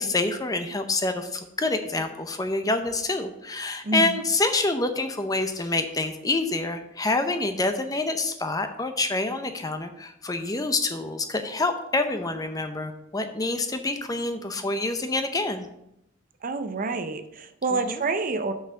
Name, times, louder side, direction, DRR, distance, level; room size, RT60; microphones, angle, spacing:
voice 1, 0.0-15.7 17.7-18.0, left 2 dB, 20° left, 7 dB, 0.6 m, -27 dB
voice 2, 3.8-4.2 16.4-18.5, right 3 dB, 40° right, 9 dB, 0.6 m, -28 dB
6.3 x 5.6 x 6.5 m, 0.81 s
head